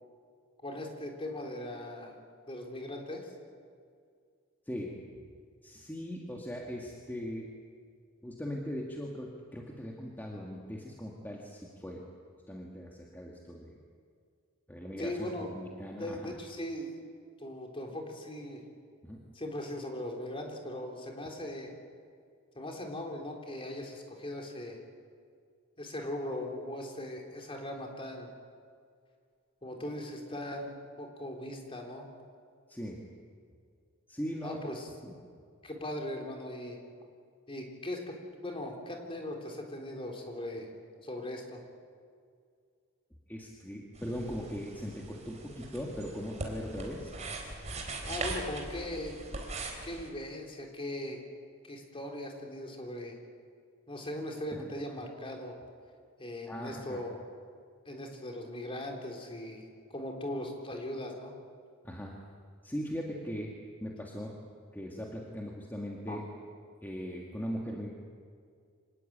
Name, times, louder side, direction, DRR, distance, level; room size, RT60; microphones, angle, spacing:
voice 1, 0.6-2.2 2.5-3.3 15.0-15.5 16.0-16.9 17.4-18.6 19.3-21.7 22.5-24.8 25.8-28.3 29.6-32.1 34.4-34.9 35.6-36.8 37.5-38.1 38.4-40.7 41.0-41.6 48.1-49.2 49.8-51.2 51.6-53.2 53.9-55.6 56.2-57.2 57.9-61.3 66.1-66.2, left 1 dB, 25° left, 2 dB, 3.9 m, -39 dB
voice 2, 5.6-7.5 8.2-12.0 12.5-13.7 14.7-16.3 19.0-19.2 32.7-33.0 34.1-34.6 35.0-35.2 43.3-47.1 54.6-54.7 56.5-57.0 61.8-62.1 62.6-63.5 63.8-64.3 64.7-66.2 66.8-67.9, equal, 10° left, -1 dB, 2.2 m, -39 dB
sound 1, 43.9-50.1, right 2 dB, 35° right, 4.1 m, -40 dB
26.0 x 19.5 x 8.9 m, 2.2 s
head